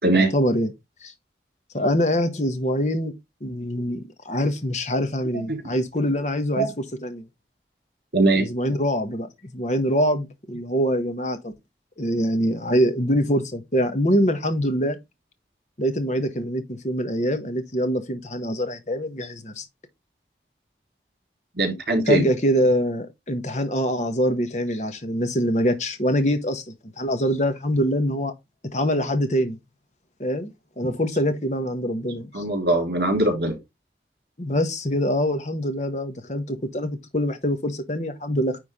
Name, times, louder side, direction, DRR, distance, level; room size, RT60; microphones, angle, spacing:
voice 1, 0.1-0.7 1.0-1.1 1.7-3.1 3.4-6.7 7.0-7.2 8.3-11.5 12.0-15.0 15.8-19.6 22.1-28.3 28.7-29.6 30.2-30.5 30.8-32.4 34.4-38.6, equal, 40° left, 1.4 m, -24 dB
voice 2, 8.1-8.5 21.6-22.3 32.3-33.6, right 2 dB, 65° right, 3.7 m, -21 dB
9.8 x 3.7 x 3.6 m
head